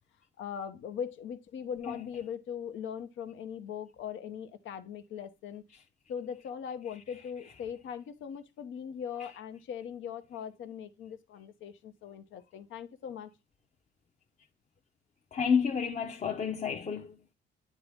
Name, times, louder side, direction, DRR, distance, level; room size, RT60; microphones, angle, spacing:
voice 1, 0.4-5.6 6.1-13.3, left 8 dB, 80° left, 0.9 m, -40 dB
voice 2, 15.3-17.3, left 6 dB, 35° left, 0.8 m, -30 dB
9.6 x 4.0 x 3.4 m
cardioid pair, 90°, 20 cm